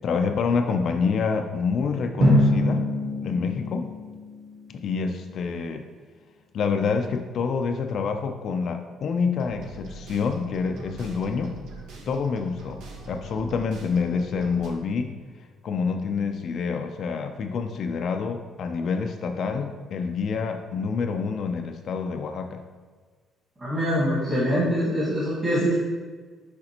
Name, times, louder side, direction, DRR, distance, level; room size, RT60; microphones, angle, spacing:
voice 1, 0.0-2.8 3.2-3.9 4.7-5.8 6.5-11.5 12.1-12.8 13.1-15.2 15.6-22.6, left 5 dB, 45° left, 5 dB, 0.4 m, -27 dB
Drum, 2.2-4.9, left 1 dB, 45° right, 1.2 m, -24 dB
sound 1, 9.4-14.7, right 3 dB, 75° right, 0.9 m, -43 dB
voice 2, 23.6-25.7, equal, 20° right, -10 dB, 1.5 m, -24 dB
6.4 x 5.1 x 2.9 m, 1.5 s
cardioid pair, 170°, 0 cm